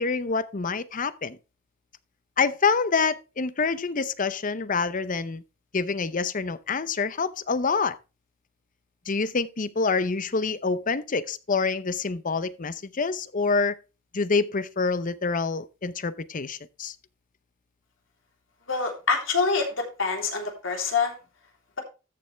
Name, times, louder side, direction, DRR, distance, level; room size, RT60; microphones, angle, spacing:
voice 1, 0.0-1.4 2.4-5.4 5.7-8.0 9.1-13.8 14.1-16.9, left 4 dB, 40° left, 0.7 m, -26 dB
voice 2, 18.7-21.1, left 4 dB, 65° left, 3.4 m, -26 dB
14.0 x 6.9 x 3.3 m
head